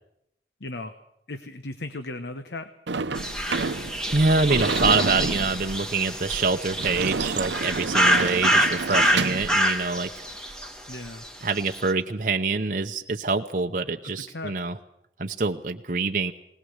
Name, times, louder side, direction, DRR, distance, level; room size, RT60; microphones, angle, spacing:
voice 1, 0.6-0.9 1.3-2.7 10.9-11.2 14.0-14.5, left 2 dB, 75° left, 9 dB, 1.1 m, -36 dB
Sliding door / Slam, 2.9-9.5, right 4 dB, 90° right, 0.8 m, -30 dB
sound 1, 3.1-11.3 11.6-11.9, equal, 5° left, 2.0 m, -26 dB
voice 2, 4.1-10.3 11.4-14.8 15.2-16.3, right 3 dB, 45° right, 4 dB, 0.8 m, -25 dB
20.0 x 19.5 x 8.0 m, 0.79 s
head